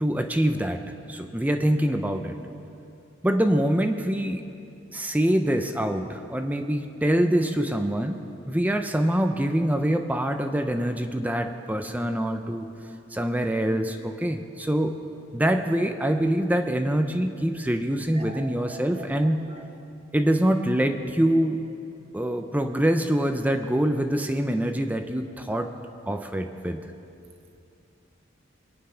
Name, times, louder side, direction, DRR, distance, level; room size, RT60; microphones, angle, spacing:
voice 1, 0.0-0.8 1.1-2.4 3.2-4.4 4.9-8.2 8.5-12.7 13.1-14.9 15.3-19.4 20.1-21.6 22.1-25.7 26.1-26.8, right 1 dB, 10° right, 6 dB, 0.6 m, -24 dB
voice 2, 18.1-19.6, right 4 dB, 30° right, 4 dB, 1.1 m, -43 dB
23.0 x 10.0 x 5.8 m, 2.6 s
head